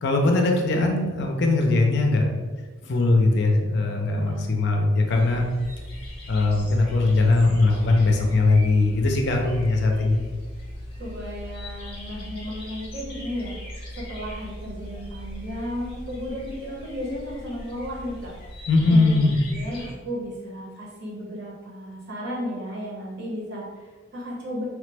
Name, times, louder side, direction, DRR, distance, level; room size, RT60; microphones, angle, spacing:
voice 1, 0.0-2.3 2.8-5.5 6.3-10.2 18.7-19.4, left 2 dB, 55° left, 2 dB, 0.4 m, -20 dB
voice 2, 4.1-4.5 11.0-18.3 18.9-24.7, equal, 55° right, -4 dB, 0.9 m, -34 dB
sound 1, 5.0-19.9, left 1 dB, 30° left, 0.7 m, -39 dB
3.1 x 2.0 x 3.3 m, 1.4 s
head